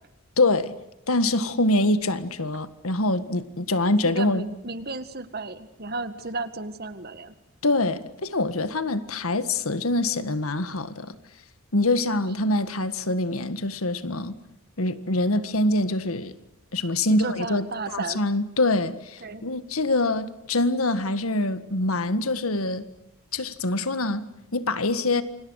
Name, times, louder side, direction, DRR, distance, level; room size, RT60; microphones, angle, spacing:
voice 1, 0.4-0.7 1.1-4.5 7.6-11.2 11.7-14.4 14.8-16.3 16.7-22.8 23.3-25.2, left 2 dB, 75° left, 1.7 m, -25 dB
voice 2, 4.0-7.3 17.1-18.2 19.2-19.5, right 3 dB, 45° right, 1.8 m, -33 dB
29.0 x 25.5 x 6.5 m
head